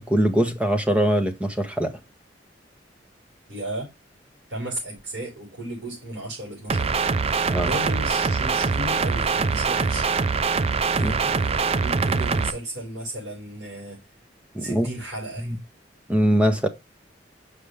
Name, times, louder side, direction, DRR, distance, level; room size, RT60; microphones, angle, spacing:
voice 1, 0.1-2.0 7.5-7.7 11.0-11.1 14.5-14.9 15.4-15.6 16.1-16.7, equal, 5° right, 1.0 m, -22 dB
voice 2, 3.5-3.9 4.5-10.1 10.9-14.0 14.6-15.5, right 1 dB, 80° right, 5.3 m, -35 dB
sound 1, 6.7-12.5, right 4 dB, 35° right, 0.4 m, -23 dB
6.7 x 5.3 x 3.4 m
head